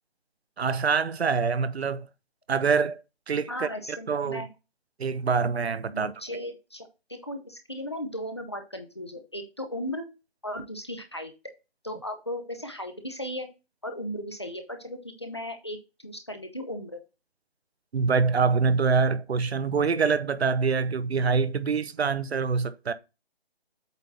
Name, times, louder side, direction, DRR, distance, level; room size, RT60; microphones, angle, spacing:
voice 1, 0.6-2.1 2.5-3.0 3.3-4.4 5.0-6.1 17.9-22.9, right 5 dB, 80° right, 0.8 m, -25 dB
voice 2, 3.5-4.5 5.9-10.1 10.4-11.3 11.8-13.5 13.8-15.8 16.0-17.0, equal, 25° left, 0.7 m, -36 dB
8.1 x 3.5 x 4.1 m
hypercardioid pair, 180°, 31 cm